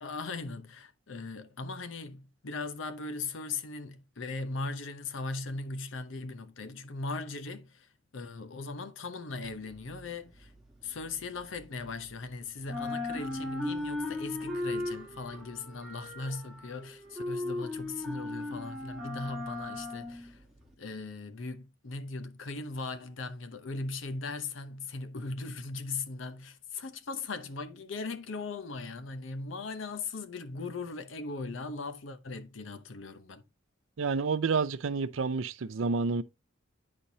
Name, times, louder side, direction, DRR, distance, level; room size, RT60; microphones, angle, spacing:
voice 1, 0.0-10.5 10.8-20.4 20.8-33.4, left 3 dB, 75° left, 0.8 m, -39 dB
sound 1, 9.5-12.3 12.6-20.7, left 2 dB, ahead, 1.4 m, -37 dB
voice 2, 34.0-36.2, right 4 dB, 75° right, 0.5 m, -29 dB
9.9 x 4.4 x 2.7 m
head